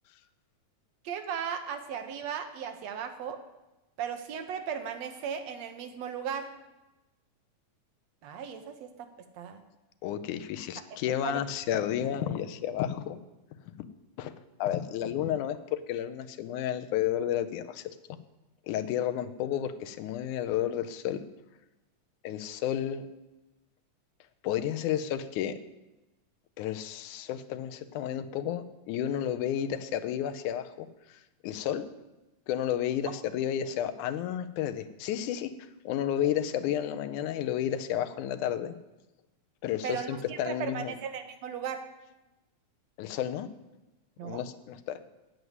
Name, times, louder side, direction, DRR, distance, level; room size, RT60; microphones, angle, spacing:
voice 1, 1.0-3.4 4.0-6.5 8.2-9.1 9.4-9.6 10.9-11.4 39.8-41.8 44.2-44.4, right 7 dB, 70° right, 7 dB, 1.8 m, -36 dB
voice 2, 10.0-13.2 14.2-14.3 14.6-18.0 18.7-21.2 22.2-23.1 24.4-25.6 26.6-31.8 32.5-35.5 35.9-38.8 39.6-41.0 43.0-43.5 44.2-45.0, left 10 dB, 85° left, 10 dB, 2.2 m, -31 dB
9.3 x 9.1 x 8.0 m, 1.0 s
omnidirectional pair, 3.5 m